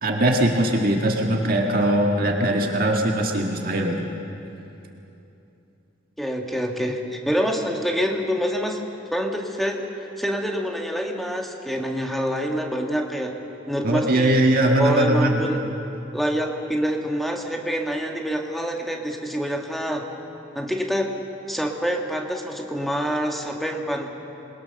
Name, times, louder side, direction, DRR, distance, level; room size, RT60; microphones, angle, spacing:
voice 1, 0.0-4.1 13.8-15.4, right 1 dB, 50° right, 1 dB, 1.8 m, -21 dB
voice 2, 6.2-8.8 9.1-13.3 13.7-14.4 14.8-15.6 16.1-20.1 20.5-21.1 21.5-24.1, equal, ahead, 1 dB, 1.8 m, -26 dB
27.5 x 21.5 x 6.6 m, 2.9 s
head